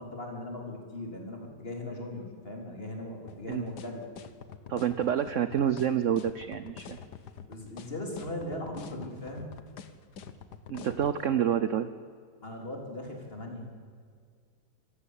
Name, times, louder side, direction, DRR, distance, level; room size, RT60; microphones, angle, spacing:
voice 1, 0.0-4.0 7.5-9.5 12.4-13.7, left 1 dB, 30° left, 1 dB, 4.2 m, -39 dB
sound 1, 3.3-11.2, left 7 dB, 60° left, 1.6 m, -45 dB
voice 2, 4.7-7.0 10.7-11.9, right 9 dB, 55° right, 12 dB, 0.8 m, -28 dB
26.5 x 14.5 x 8.5 m, 2.1 s
omnidirectional pair, 2.2 m